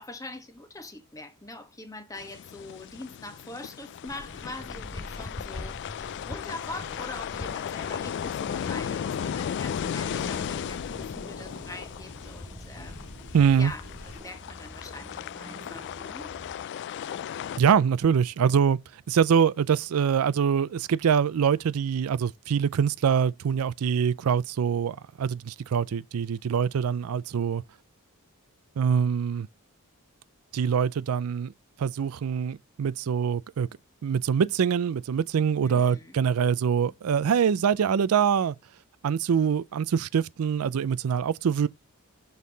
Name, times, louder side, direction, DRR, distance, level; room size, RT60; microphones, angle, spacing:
voice 1, 0.0-6.0 6.3-13.1 13.6-16.4 35.6-36.2, left 2 dB, 15° left, 1.2 m, -43 dB
sound 1, 2.2-17.6, left 8 dB, 50° left, 0.3 m, -36 dB
sound 2, 4.1-14.2, left 2 dB, 75° left, 2.1 m, -43 dB
sound 3, 9.0-16.6, right 1 dB, 15° right, 0.9 m, -48 dB
voice 2, 13.3-13.7 17.6-27.6 28.8-29.5 30.5-31.5 31.8-33.7 34.0-38.6 39.0-41.7, right 7 dB, 75° right, 0.4 m, -24 dB
6.4 x 5.5 x 3.9 m
head